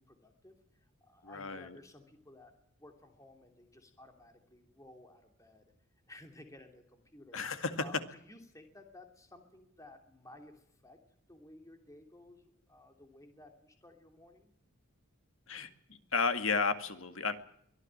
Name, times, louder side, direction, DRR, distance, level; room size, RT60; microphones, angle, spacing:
voice 1, 0.0-2.5 2.8-5.7 6.1-7.4 7.8-11.0 11.3-12.4 12.7-14.5, left 1 dB, 15° left, 4 dB, 2.9 m, -56 dB
voice 2, 1.2-1.8 7.3-7.7 15.5-17.4, left 4 dB, 65° left, 9 dB, 2.1 m, -33 dB
23.5 x 15.0 x 8.9 m, 0.71 s
head